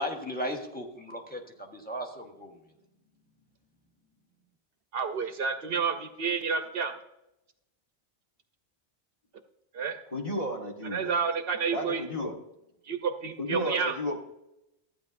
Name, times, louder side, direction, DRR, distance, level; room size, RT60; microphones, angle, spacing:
voice 1, 0.0-2.5, equal, 10° left, 2 dB, 1.2 m, -36 dB
voice 2, 4.9-6.9 9.7-10.0 10.8-12.0 12.9-13.9, right 5 dB, 65° right, 7 dB, 0.8 m, -30 dB
voice 3, 10.1-11.1 11.7-12.3 13.4-14.2, left 1 dB, 35° left, -1 dB, 1.6 m, -33 dB
14.0 x 9.2 x 2.6 m, 0.86 s
omnidirectional pair, 1.1 m